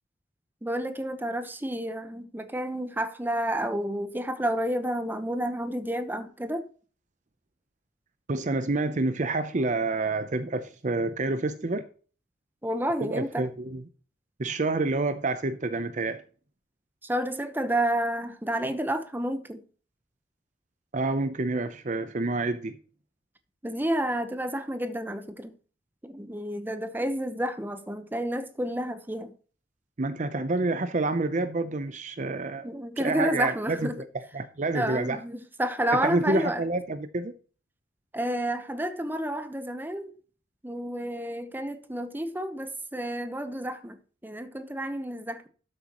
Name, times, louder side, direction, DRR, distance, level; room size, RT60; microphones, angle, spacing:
voice 1, 0.6-6.7 12.6-13.5 17.0-19.6 23.6-25.5 26.0-29.3 32.6-34.0 34.7-36.6 38.1-40.1 40.6-45.5, right 1 dB, 10° right, 1.0 m, -30 dB
voice 2, 8.3-11.9 13.0-13.8 14.4-16.2 20.9-22.7 30.0-32.7 33.0-33.9 34.3-35.2 35.9-37.3, right 2 dB, 40° right, 0.6 m, -28 dB
12.5 x 7.9 x 3.0 m
head